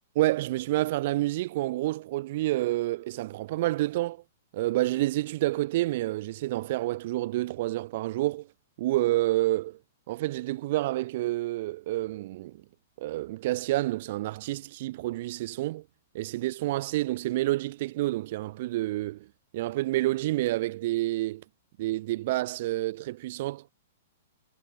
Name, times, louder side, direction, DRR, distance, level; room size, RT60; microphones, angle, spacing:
voice 1, 0.2-4.2 4.5-8.5 8.8-9.8 10.1-12.5 13.0-15.8 16.1-19.2 19.5-21.4 21.8-23.6, right 17 dB, 55° right, 0.3 m, -28 dB
hypercardioid pair, 130°, 0 cm